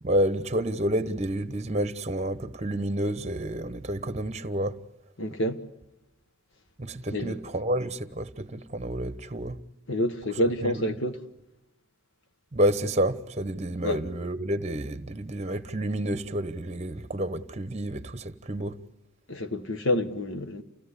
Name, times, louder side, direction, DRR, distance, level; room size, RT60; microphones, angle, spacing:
voice 1, 0.0-4.8 6.8-9.6 10.6-10.9 12.5-18.8, right 1 dB, 30° right, 1.1 m, -29 dB
voice 2, 5.2-5.6 7.1-7.4 9.9-11.2 13.8-14.0 19.3-20.6, left 1 dB, 55° left, 1.4 m, -28 dB
29.0 x 17.0 x 9.8 m
head